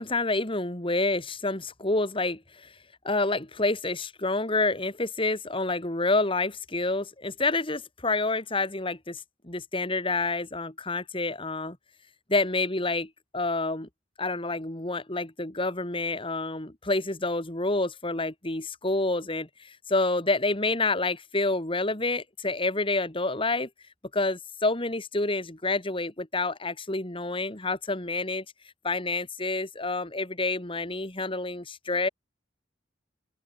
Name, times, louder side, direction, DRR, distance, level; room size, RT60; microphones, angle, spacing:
voice 1, 0.0-2.7 3.0-11.8 12.3-13.9 14.2-23.7 24.1-28.4 28.8-32.1, left 2 dB, 30° left, 2.7 m, -28 dB
open air
head